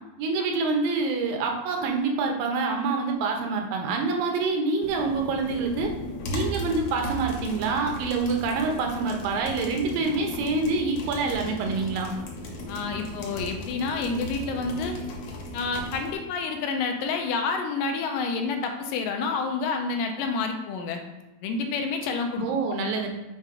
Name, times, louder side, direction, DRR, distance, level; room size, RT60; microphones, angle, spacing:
voice 1, 0.2-5.9 6.3-12.1 22.4-23.1, right 4 dB, 85° right, 2 dB, 2.6 m, -26 dB
sound 1, 4.8-16.1, left 1 dB, 65° left, 2.1 m, -36 dB
voice 2, 12.7-15.0 15.5-21.0 21.4-22.7, left 4 dB, 80° left, 4 dB, 2.2 m, -29 dB
7.4 x 3.3 x 4.8 m, 1.0 s
omnidirectional pair, 3.9 m